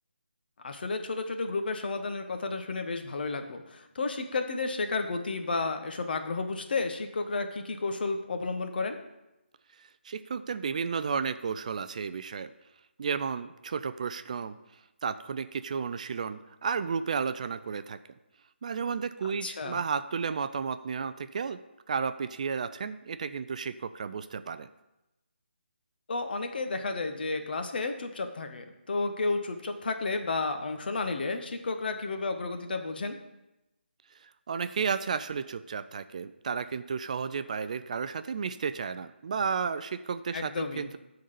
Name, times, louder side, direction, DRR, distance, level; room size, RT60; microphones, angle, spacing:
voice 1, 0.6-9.0 19.4-19.8 26.1-33.2 40.3-40.9, left 3 dB, 55° left, 6 dB, 1.0 m, -32 dB
voice 2, 9.8-12.5 13.0-14.6 15.0-18.0 18.6-21.6 21.9-24.7 34.2-41.0, right 6 dB, 40° right, 12 dB, 0.3 m, -33 dB
10.5 x 4.0 x 6.8 m, 0.94 s
figure-of-eight pair, 160°, 6 cm